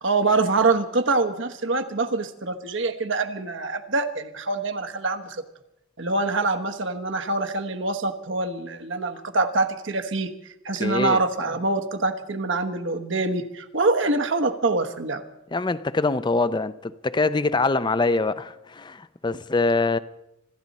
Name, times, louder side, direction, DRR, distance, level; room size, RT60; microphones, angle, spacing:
voice 1, 0.0-5.4 6.0-10.3 10.6-15.2, right 3 dB, 60° right, 1.2 m, -25 dB
voice 2, 10.8-11.2 15.5-20.0, left 3 dB, 20° left, 0.5 m, -24 dB
25.5 x 13.5 x 4.2 m
head